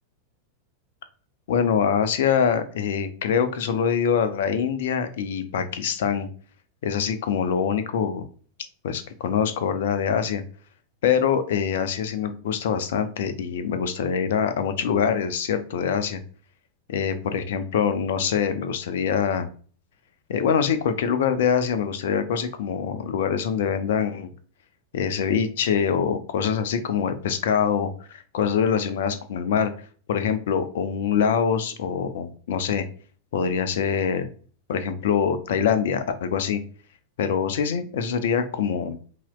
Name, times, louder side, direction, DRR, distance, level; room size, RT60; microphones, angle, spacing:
voice 1, 1.5-6.3 6.8-8.3 8.8-10.4 11.0-16.2 16.9-19.5 20.3-24.3 24.9-29.7 30.1-32.9 33.3-34.3 34.7-36.6 37.2-39.0, left 7 dB, 55° left, 10 dB, 0.6 m, -24 dB
5.7 x 2.9 x 2.3 m, 0.42 s
figure-of-eight pair, 90°, 0 cm